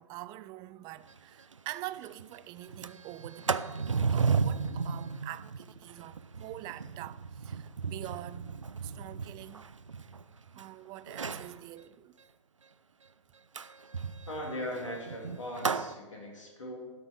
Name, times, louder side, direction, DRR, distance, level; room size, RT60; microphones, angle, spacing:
voice 1, 0.0-3.7 4.1-8.6 8.8-9.7 10.5-12.2, right 16 dB, 25° right, 0.4 m, -45 dB
Sliding door, 1.1-1.2 1.5-1.6 1.9-2.2 2.6-10.6 11.1-11.5 13.5-15.9, right 5 dB, 90° right, 0.5 m, -34 dB
voice 2, 14.3-16.9, left 1 dB, 85° left, 2.8 m, -39 dB
13.0 x 6.1 x 6.3 m
figure-of-eight pair, 110°, 16 cm